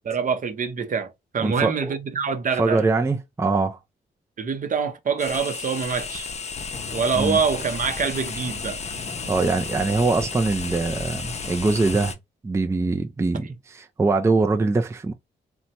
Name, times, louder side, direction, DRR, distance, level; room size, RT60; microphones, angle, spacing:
voice 1, 0.0-2.9 4.4-6.3 6.9-8.8, right 5 dB, 50° right, 0.7 m, -25 dB
voice 2, 1.4-1.9 2.5-3.8 7.1-7.4 9.3-12.1 12.4-15.1, right 3 dB, 15° right, 0.4 m, -23 dB
sound 1, 5.2-12.1, left 5 dB, 40° left, 0.6 m, -33 dB
2.9 x 2.2 x 2.7 m
supercardioid pair, 60°, 18 cm